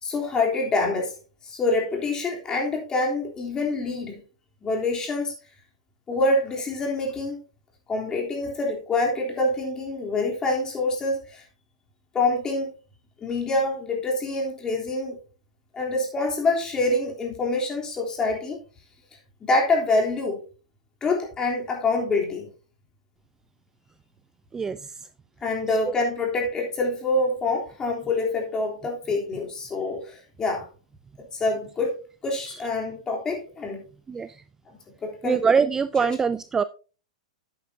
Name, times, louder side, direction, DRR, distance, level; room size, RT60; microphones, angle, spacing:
voice 1, 0.0-1.1 1.4-4.2 4.6-5.3 6.1-7.4 7.9-11.4 12.1-12.7 13.2-15.2 15.7-18.6 19.5-20.4 21.0-22.5 25.4-30.6 31.2-32.0 32.2-33.8 35.0-35.4 36.0-36.1, left 2 dB, 20° left, 3.4 m, -26 dB
voice 2, 34.1-34.4 35.2-36.6, right 5 dB, 15° right, 0.4 m, -23 dB
11.0 x 9.2 x 2.8 m
hypercardioid pair, 120°, 4 cm